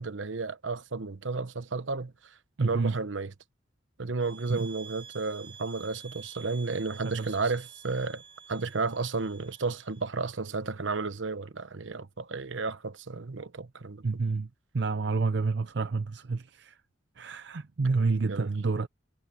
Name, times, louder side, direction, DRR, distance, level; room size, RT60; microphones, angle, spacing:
voice 1, 0.0-2.1 2.6-3.3 4.0-8.2 8.5-14.2 18.2-18.5, right 4 dB, 75° right, 1.0 m, -32 dB
voice 2, 2.6-2.9 4.5-4.7 7.0-7.5 14.0-14.5 14.7-16.8 17.2-18.9, right 4 dB, 60° right, 0.6 m, -29 dB
sound 1, 4.2-10.1, right 7 dB, 30° right, 6.4 m, -50 dB
head